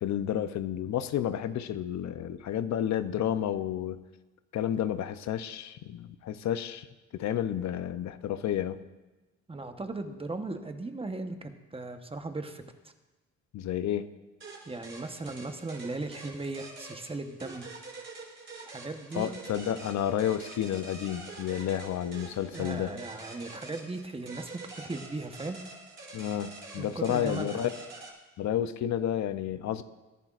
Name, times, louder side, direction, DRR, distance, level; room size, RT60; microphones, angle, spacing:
voice 1, 0.0-4.0 4.5-6.9 7.1-8.8 13.5-14.1 19.1-22.9 26.1-27.7 28.4-29.8, left 10 dB, 65° left, 11 dB, 0.7 m, -31 dB
voice 2, 9.5-12.6 14.7-17.7 18.6-19.3 22.5-25.6 26.8-27.7, right 3 dB, 20° right, 6 dB, 1.1 m, -37 dB
sound 1, 14.4-28.1, right 3 dB, 40° right, 3.5 m, -46 dB
22.0 x 10.5 x 2.5 m, 1.1 s
cardioid pair, 90°, 30 cm